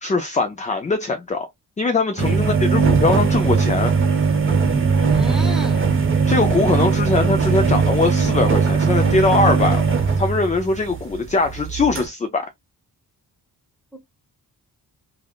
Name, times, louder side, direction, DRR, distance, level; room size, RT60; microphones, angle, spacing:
voice 1, 0.0-1.5 1.8-3.9 6.3-12.5, left 3 dB, 20° left, 0.4 m, -21 dB
sound 1, 2.2-12.1, right 5 dB, 30° right, 0.9 m, -19 dB
voice 2, 5.0-5.9 13.9-14.0, equal, ahead, 0.9 m, -32 dB
3.3 x 2.4 x 2.3 m
cardioid pair, 90°, 39 cm